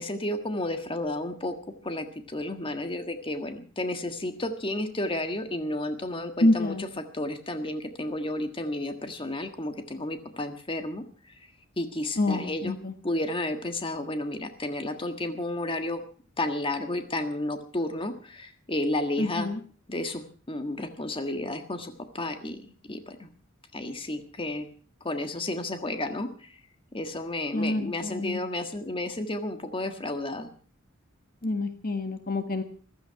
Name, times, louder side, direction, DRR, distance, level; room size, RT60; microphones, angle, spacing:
voice 1, 0.0-1.5 1.8-6.9 7.1-11.0 11.8-12.7 13.0-16.0 16.4-19.5 19.9-23.3 23.7-24.7 25.0-26.6 26.9-30.5, left 1 dB, 25° left, 6 dB, 1.6 m, -32 dB
voice 2, 6.4-6.8 12.2-12.9 19.2-19.6 27.5-28.4 31.4-32.6, left 2 dB, 45° left, 8 dB, 1.5 m, -27 dB
15.0 x 14.0 x 5.7 m, 0.43 s
head